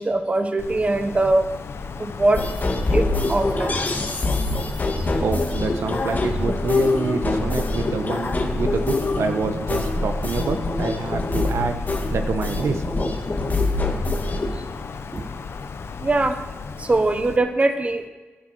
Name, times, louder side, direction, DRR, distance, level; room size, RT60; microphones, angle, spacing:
voice 1, 0.0-1.5 2.0-2.4 2.9-3.8 15.1-15.2 16.0-16.4 16.8-18.1, right 2 dB, 30° right, 8 dB, 1.0 m, -21 dB
Wind, 0.6-17.4, left 5 dB, 65° left, 0.9 m, -35 dB
sound 1, 2.3-14.5, left 2 dB, 40° left, 2.1 m, -24 dB
voice 2, 5.2-12.8 13.2-13.3, right 4 dB, 75° right, 6 dB, 1.2 m, -27 dB
10.0 x 10.0 x 6.3 m, 1.3 s
cardioid pair, 85°, 5 cm